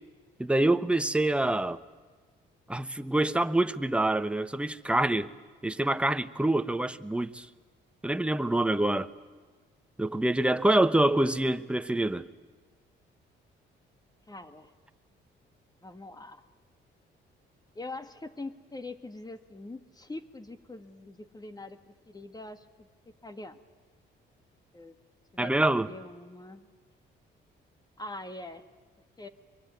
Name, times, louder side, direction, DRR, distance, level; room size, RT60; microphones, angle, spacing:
voice 1, 0.4-1.8 2.7-5.3 5.6-7.5 8.0-9.1 10.0-12.3 25.4-25.9, right 1 dB, 5° right, 1.0 m, -26 dB
voice 2, 14.3-14.7 15.8-16.4 17.7-22.9 23.2-23.6 24.7-24.9 25.3-26.7 28.0-28.6 29.2-29.3, left 2 dB, 20° left, 1.7 m, -43 dB
24.0 x 23.0 x 9.4 m
cardioid pair, 90°, 20 cm